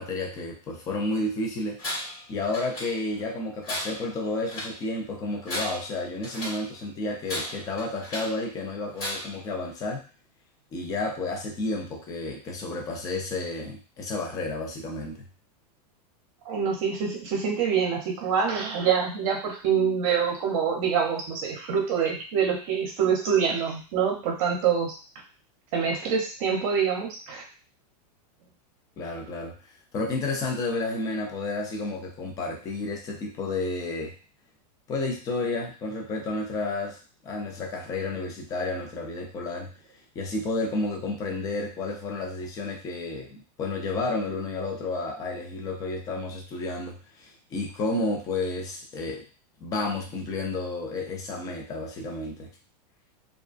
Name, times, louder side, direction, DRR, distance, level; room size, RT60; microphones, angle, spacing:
voice 1, 0.0-1.8 2.3-10.1 10.7-15.2 29.0-29.5 29.9-34.1 34.9-39.7 40.2-49.2 49.6-52.5, left 2 dB, 15° left, 1 dB, 0.4 m, -31 dB
Tools, 1.8-2.2 2.5-3.2 3.6-4.8 5.3-6.7 7.2-8.4 8.9-9.5, left 1 dB, 45° left, 1.3 m, -35 dB
voice 2, 16.5-25.0 25.7-27.4, right 7 dB, 55° right, 0 dB, 0.7 m, -25 dB
2.3 x 2.2 x 2.4 m, 0.36 s
supercardioid pair, 150°, 21 cm